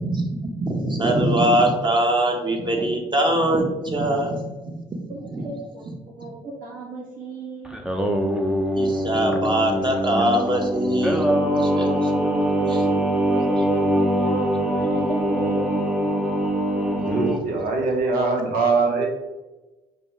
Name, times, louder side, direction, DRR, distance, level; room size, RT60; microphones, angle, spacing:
voice 1, 0.0-4.8 5.2-5.4 8.7-11.3 11.5-12.1 12.7-12.8, right 1 dB, 30° right, 1 dB, 1.1 m, -22 dB
voice 2, 5.4-7.8 12.6-13.0 13.3-15.8, right 2 dB, 60° right, -5 dB, 1.5 m, -35 dB
Singing, 7.6-17.4, right 1 dB, 5° right, 0.6 m, -23 dB
voice 3, 17.0-19.1, right 3 dB, 80° right, 1 dB, 1.2 m, -22 dB
5.2 x 2.4 x 4.3 m, 1.1 s
cardioid pair, 80°, 16 cm